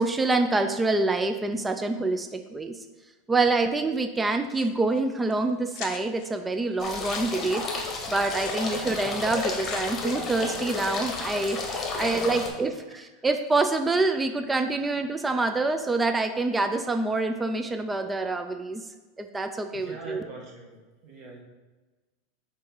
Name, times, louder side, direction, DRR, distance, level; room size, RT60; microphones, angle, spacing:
voice 1, 0.0-2.8 3.3-11.6 11.9-18.8 19.2-20.2, right 3 dB, 10° right, 7 dB, 0.3 m, -26 dB
sound 1, 4.5-5.0 5.3-5.4 5.7-6.3 6.8-10.4 10.6-11.5, left 8 dB, 50° left, 0.6 m, -43 dB
sound 2, 6.8-12.5, left 3 dB, 20° left, 1.1 m, -32 dB
voice 2, 8.7-9.5 11.9-13.0 19.7-20.8 21.0-21.4, right 3 dB, 45° right, -2 dB, 1.7 m, -45 dB
6.3 x 3.5 x 4.6 m, 1.2 s
supercardioid pair, 155°, 0 cm